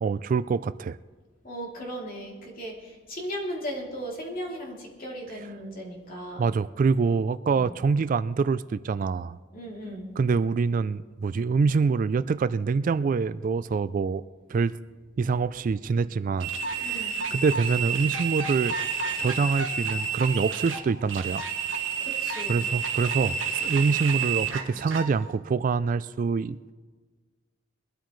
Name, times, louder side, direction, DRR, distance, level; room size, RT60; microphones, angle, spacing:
voice 1, 0.0-1.0 6.4-9.4 10.2-14.2 14.5-14.8 15.2-18.8 19.2-21.4 22.5-26.6, right 5 dB, 45° right, 16 dB, 0.3 m, -25 dB
voice 2, 1.4-6.5 7.5-7.7 9.5-10.1 16.5-17.2 22.0-22.6, equal, 50° left, -2 dB, 3.0 m, -37 dB
sound 1, 16.4-25.1, right 6 dB, 75° right, 1.5 m, -30 dB
21.5 x 13.0 x 3.2 m, 1.4 s
head